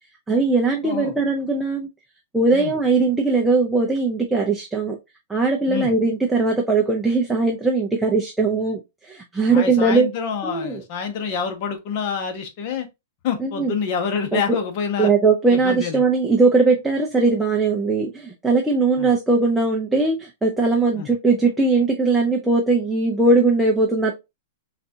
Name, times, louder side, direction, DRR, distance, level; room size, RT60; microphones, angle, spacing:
voice 1, 0.3-1.9 2.3-5.0 5.3-10.1 10.4-10.8 13.4-13.7 14.3-14.4 15.0-24.1, right 3 dB, 5° right, 0.5 m, -20 dB
voice 2, 0.8-1.1 2.5-2.7 5.7-5.9 9.5-12.9 13.2-15.1 15.5-16.0 19.0-19.1 20.9-21.1, left 6 dB, 45° left, 0.9 m, -27 dB
3.8 x 2.4 x 2.7 m
hypercardioid pair, 135°, 0 cm